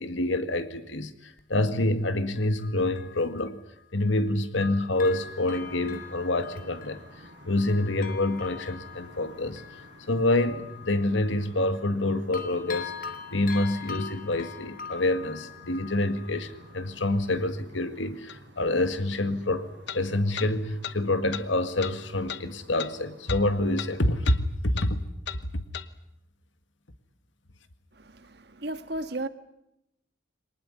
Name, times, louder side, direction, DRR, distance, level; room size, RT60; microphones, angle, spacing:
voice 1, 0.0-3.6 3.9-7.0 7.5-9.6 10.1-25.0, left 2 dB, 90° left, 1.9 m, -27 dB
Bell, 1.4-1.5 2.4-4.3 4.6-12.0 12.3-16.9 17.4-17.5, left 6 dB, 45° left, 2.2 m, -43 dB
sound 1, 4.9-24.1, right 1 dB, 75° right, 6.4 m, -52 dB
sound 2, 18.3-18.4 19.9-20.0 20.4-20.5 20.8-21.0 21.3-21.5 21.8-22.0 22.3-22.4 22.8-22.9 23.3-23.4 23.8-23.9 24.2-24.4 24.8-24.9 25.3-25.4 25.7-25.9, left 9 dB, 65° left, 1.1 m, -36 dB
voice 2, 28.2-29.3, right 1 dB, 60° right, 1.6 m, -34 dB
24.0 x 19.5 x 10.0 m
head